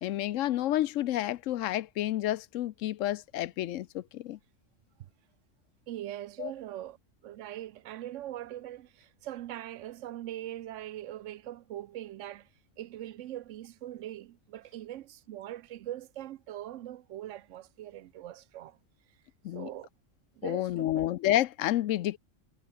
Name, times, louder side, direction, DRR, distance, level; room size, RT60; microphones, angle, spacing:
voice 1, 0.0-4.4 6.4-6.5 19.4-19.7 20.4-22.2, left 13 dB, 75° left, 0.9 m, -30 dB
voice 2, 5.9-7.0 7.2-12.5 12.8-18.8 19.5-19.9 20.3-21.1, right 13 dB, 70° right, 0.9 m, -41 dB
omnidirectional pair, 1.4 m